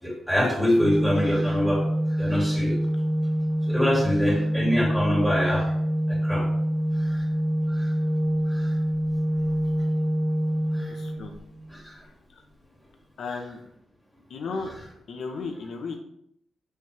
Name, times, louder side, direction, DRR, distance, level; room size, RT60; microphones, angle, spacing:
voice 1, 0.0-1.8 2.2-2.8 3.7-5.7 6.1-6.4 7.1-7.2 7.7-7.9 8.5-8.7 10.7-10.9 11.7-12.0, equal, ahead, -3 dB, 2.9 m, -25 dB
Organ, 0.7-11.6, equal, 20° left, 2.2 m, -26 dB
voice 2, 10.9-11.3 13.2-13.6 14.3-14.7 15.1-16.0, left 4 dB, 70° left, 3 dB, 1.4 m, -34 dB
7.7 x 6.7 x 3.6 m, 0.71 s
wide cardioid pair, 145°, 0 cm